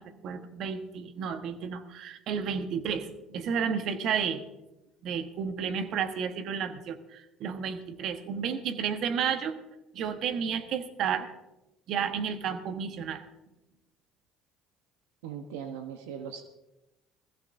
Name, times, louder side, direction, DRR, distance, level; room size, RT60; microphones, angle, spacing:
voice 1, 0.0-4.4 5.0-9.5 9.9-11.3 11.9-13.2, right 7 dB, 60° right, 8 dB, 1.2 m, -32 dB
voice 2, 15.2-16.4, right 8 dB, 85° right, 7 dB, 1.0 m, -39 dB
20.5 x 15.0 x 2.6 m, 0.98 s
supercardioid pair, 75°, 0 cm